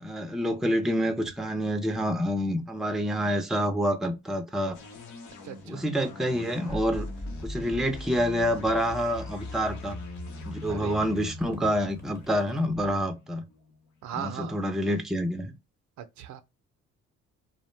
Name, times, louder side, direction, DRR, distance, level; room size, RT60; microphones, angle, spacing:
voice 1, 0.0-4.8 5.7-7.1 7.4-10.0 10.5-13.4 14.1-15.4, equal, ahead, 0.5 m, -27 dB
sound 1, 4.7-14.2, left 3 dB, 70° left, 0.8 m, -45 dB
voice 2, 5.4-5.9 10.7-11.0 14.0-14.6 16.0-16.4, right 9 dB, 70° right, 0.5 m, -38 dB
sound 2, 6.7-13.0, left 1 dB, 35° left, 1.0 m, -41 dB
2.4 x 2.1 x 3.0 m
cardioid pair, 90°, 30 cm